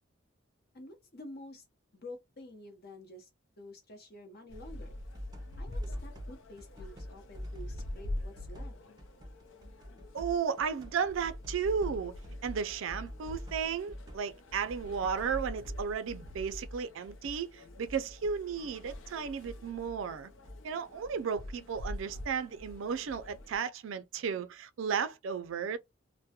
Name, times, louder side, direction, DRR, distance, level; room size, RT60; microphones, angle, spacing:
voice 1, 0.7-1.6 1.9-3.3 3.6-4.9 5.6-8.7, left 1 dB, 55° left, 0.9 m, -49 dB
sound 1, 4.5-23.6, left 1 dB, 90° left, 0.5 m, -45 dB
sound 2, 5.0-6.3 6.6-19.0 19.3-22.2 22.5-23.4, equal, 20° right, 0.5 m, -46 dB
voice 2, 10.1-12.1 12.4-20.3 20.6-25.8, right 6 dB, 90° right, 0.4 m, -34 dB
2.2 x 2.1 x 2.8 m
head